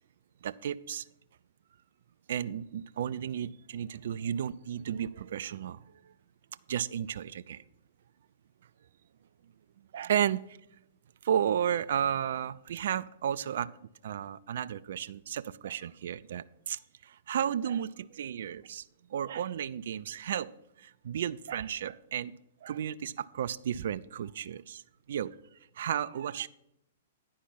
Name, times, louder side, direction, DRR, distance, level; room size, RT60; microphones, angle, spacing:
voice 1, 0.4-1.0 2.3-5.8 6.7-7.6 9.9-10.4 11.2-16.8 17.1-18.8 19.1-20.5 20.8-22.3 22.6-24.8 25.1-25.3 25.8-26.5, right 9 dB, 60° right, 18 dB, 0.3 m, -33 dB
9.8 x 5.5 x 5.7 m, 0.82 s
figure-of-eight pair, 110°, 0 cm